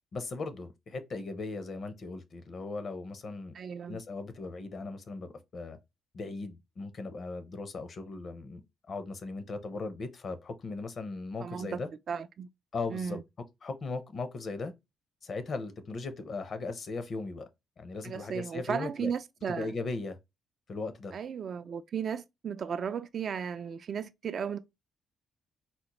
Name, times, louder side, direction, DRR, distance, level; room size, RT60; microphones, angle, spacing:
voice 1, 0.1-3.6 3.9-5.8 6.1-8.6 8.9-11.9 12.7-13.2 13.6-14.7 15.2-17.5 17.8-19.1 19.5-20.2 20.7-21.2, left 3 dB, 50° left, 0.6 m, -38 dB
voice 2, 3.5-4.0 11.4-11.8 12.1-12.5 12.9-13.2 18.0-19.7 21.1-24.6, right 7 dB, 55° right, 0.3 m, -35 dB
4.1 x 2.1 x 2.9 m
cardioid pair, 90°, 0 cm